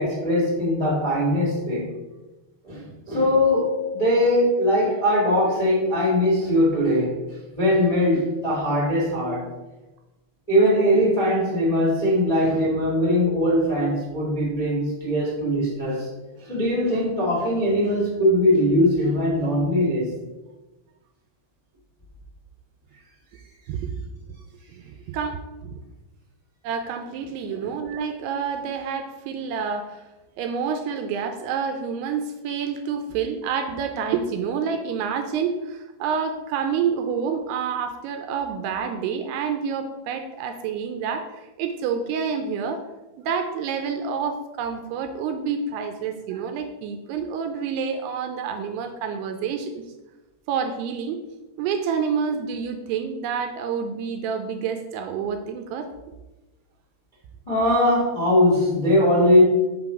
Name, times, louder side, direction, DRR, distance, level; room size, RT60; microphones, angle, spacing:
voice 1, 0.0-1.9 2.6-7.2 7.5-9.5 10.5-16.1 16.4-20.1 27.5-27.6 57.4-59.4, left 1 dB, 25° left, -6 dB, 0.8 m, -21 dB
voice 2, 24.8-25.8 26.6-30.0 30.4-42.8 43.2-49.8 50.5-51.2 51.6-55.9, right 6 dB, 80° right, 6 dB, 2.4 m, -28 dB
6.0 x 3.9 x 5.8 m, 1.1 s
omnidirectional pair, 4.9 m